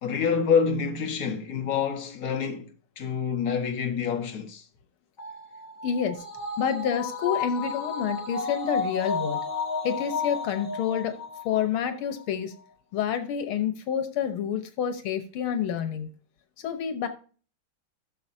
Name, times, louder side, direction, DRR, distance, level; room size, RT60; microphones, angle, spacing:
voice 1, 0.0-2.7 3.0-4.6, left 6 dB, 45° left, 1.7 m, -27 dB
sound 1, 5.2-11.8 12.2-12.3, left 4 dB, 70° left, 2.5 m, -32 dB
voice 2, 5.8-6.2 6.6-9.4 9.8-11.2 11.5-12.5 12.9-16.1 16.6-17.1, left 8 dB, 85° left, 1.9 m, -28 dB
14.0 x 6.7 x 2.7 m
omnidirectional pair, 2.3 m